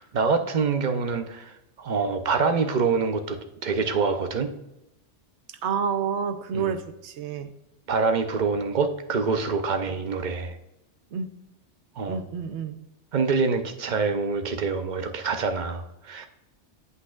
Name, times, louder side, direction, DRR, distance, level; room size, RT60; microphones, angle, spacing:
voice 1, 0.0-4.5 6.5-6.7 7.9-10.6 12.0-12.2 13.1-16.3, right 4 dB, 50° right, 7 dB, 0.7 m, -26 dB
voice 2, 5.6-7.5 11.1-11.3 12.1-12.8, right 6 dB, 75° right, 9 dB, 0.9 m, -29 dB
8.3 x 8.0 x 2.4 m, 0.91 s
omnidirectional pair, 1.2 m